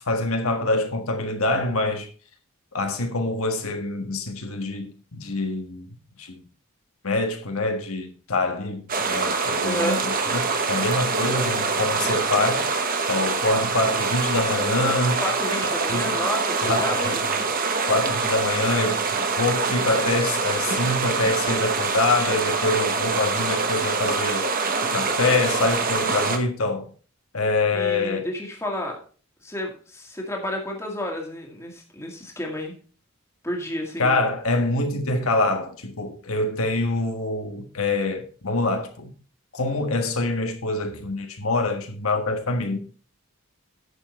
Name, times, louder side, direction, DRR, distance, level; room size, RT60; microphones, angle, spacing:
voice 1, 0.0-2.1 2.7-5.9 6.2-6.4 7.0-12.7 13.1-15.2 15.9-16.1 16.6-17.1 17.9-24.5 24.8-26.9 27.3-28.3 34.0-39.1 39.5-42.8, left 2 dB, 75° left, 1.6 m, -25 dB
sound 1, 8.9-26.4, right 4 dB, 40° right, 1.1 m, -25 dB
voice 2, 9.6-10.1 15.2-17.2 27.7-29.0 29.4-32.8 33.4-34.2, left 1 dB, 10° left, 2.0 m, -30 dB
10.0 x 7.4 x 4.3 m
head